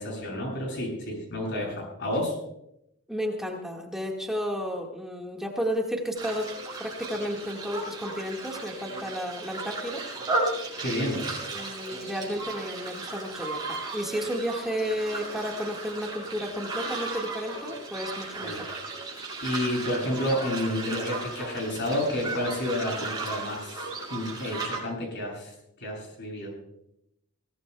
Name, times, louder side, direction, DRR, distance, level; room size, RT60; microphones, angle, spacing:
voice 1, 0.0-2.4 10.8-11.2 18.4-18.6 19.4-25.5 25.8-26.5, left 1 dB, 55° left, 0 dB, 7.4 m, -30 dB
voice 2, 3.1-6.5 6.8-10.0 11.5-18.7, equal, ahead, -1 dB, 1.6 m, -32 dB
sound 1, 6.2-24.8, right 2 dB, 20° right, 6.5 m, -35 dB
21.5 x 18.0 x 2.3 m, 0.79 s
head